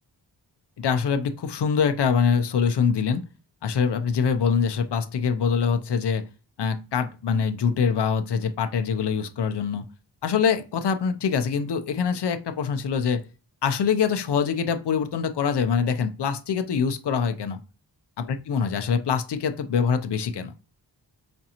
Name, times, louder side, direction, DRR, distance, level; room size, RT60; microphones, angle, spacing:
voice 1, 0.8-3.2 3.6-6.2 6.6-9.9 10.2-13.2 13.6-17.6 18.3-20.5, left 6 dB, 70° left, 0.6 m, -24 dB
5.2 x 2.4 x 2.8 m
wide cardioid pair, 115°, 43 cm